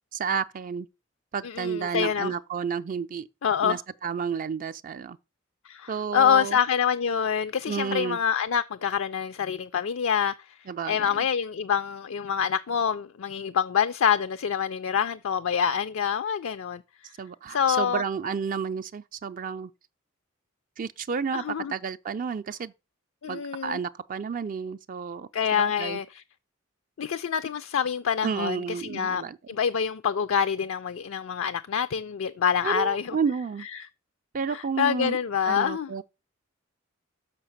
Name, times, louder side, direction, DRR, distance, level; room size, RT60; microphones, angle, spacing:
voice 1, 0.1-0.9 1.3-3.3 3.6-5.2 5.9-6.6 7.7-8.2 10.7-11.3 17.2-19.7 20.8-21.4 21.7-22.7 23.3-26.0 28.2-29.4 32.6-33.7 34.3-35.2 35.5-36.0, right 6 dB, 40° right, 0.4 m, -31 dB
voice 2, 1.4-2.3 3.4-3.8 5.6-17.1 17.5-18.0 21.3-21.7 23.2-23.8 25.3-26.2 27.0-33.2 33.7-33.9 34.5-35.9, left 7 dB, 70° left, 0.4 m, -26 dB
6.3 x 5.8 x 6.5 m
head